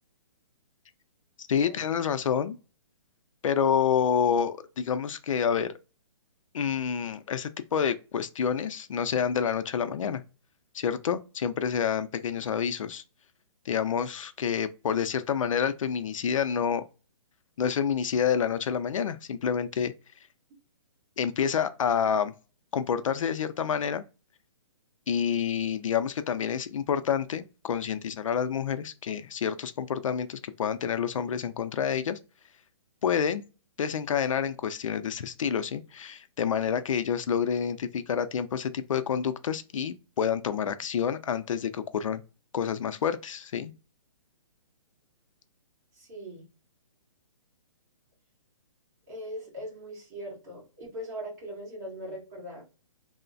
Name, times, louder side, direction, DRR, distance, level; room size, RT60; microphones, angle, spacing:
voice 1, 1.5-2.6 3.4-5.7 6.5-10.2 10.7-13.0 13.7-16.8 17.6-19.9 21.2-22.3 22.7-24.0 25.1-32.2 33.0-33.4 33.8-42.2 42.5-43.7, left 7 dB, 75° left, 0.4 m, -28 dB
voice 2, 45.9-46.4 49.1-52.6, equal, 30° right, 1.4 m, -40 dB
3.1 x 2.0 x 2.5 m
hypercardioid pair, 175°, 17 cm